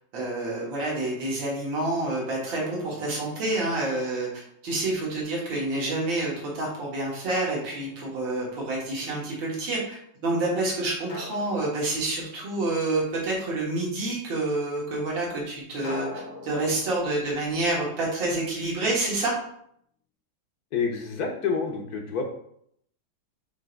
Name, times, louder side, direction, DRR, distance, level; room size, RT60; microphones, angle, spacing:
voice 1, 0.1-19.3, right 2 dB, 70° right, -4 dB, 2.6 m, -28 dB
Drum, 0.7-1.4 3.4-4.5 7.3-8.4 11.1-12.7 15.8-18.8, left 2 dB, 80° left, 2.5 m, -44 dB
voice 2, 20.7-22.3, left 5 dB, 55° left, 3 dB, 1.3 m, -28 dB
8.5 x 3.1 x 4.6 m, 0.70 s
omnidirectional pair, 2.2 m